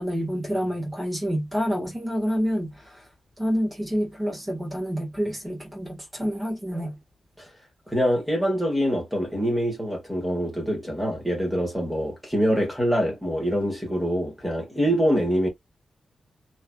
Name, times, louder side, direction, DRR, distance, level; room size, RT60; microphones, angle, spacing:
voice 1, 0.0-2.8 3.4-6.9, equal, 15° right, 1.5 m, -28 dB
voice 2, 7.9-15.5, equal, ahead, 1.6 m, -25 dB
3.0 x 2.8 x 2.3 m
wide cardioid pair, 180°, 0 cm